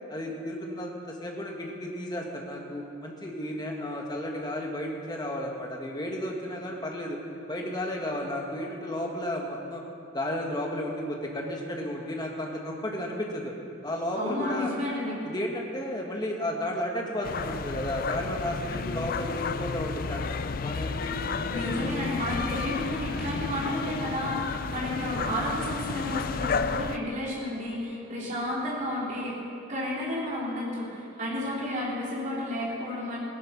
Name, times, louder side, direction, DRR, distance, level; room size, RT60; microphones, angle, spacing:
voice 1, 0.1-7.2 7.5-9.8 10.1-13.5 13.8-14.7 15.2-22.0, left 1 dB, 20° left, 0 dB, 1.6 m, -33 dB
voice 2, 14.1-15.3 21.5-29.4 29.7-33.2, left 1 dB, 40° right, -6 dB, 3.7 m, -32 dB
sound 1, 17.2-27.0, left 5 dB, 45° left, 0.4 m, -32 dB
17.0 x 10.5 x 6.0 m, 2.7 s
head